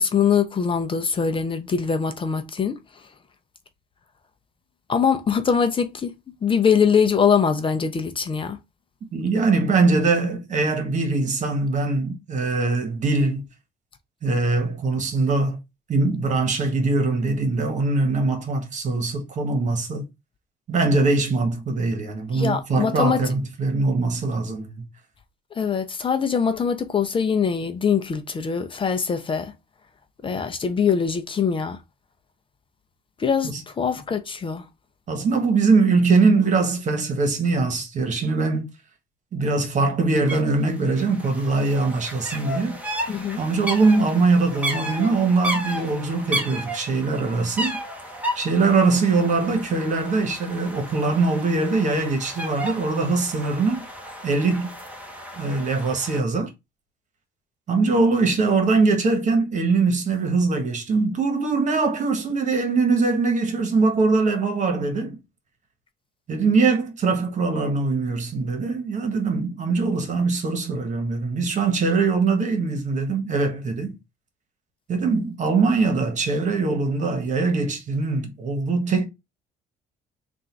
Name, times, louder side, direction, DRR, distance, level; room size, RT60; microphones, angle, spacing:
voice 1, 0.0-2.8 4.9-6.1 6.4-8.6 22.3-23.2 25.6-29.5 30.2-31.8 33.2-34.7 43.1-43.4, left 6 dB, 30° left, 0.6 m, -22 dB
voice 2, 9.1-13.4 14.2-15.6 15.9-20.1 20.7-24.7 33.4-33.6 35.1-38.7 39.3-42.8 43.4-47.8 48.3-53.8 54.2-54.7 55.4-56.5 57.7-65.2 66.3-73.9 74.9-79.1, right 3 dB, 45° right, 1.4 m, -22 dB
sound 1, 40.3-40.4 40.7-56.2, equal, 10° right, 1.2 m, -33 dB
3.7 x 2.6 x 4.5 m
cardioid pair, 110°, 17 cm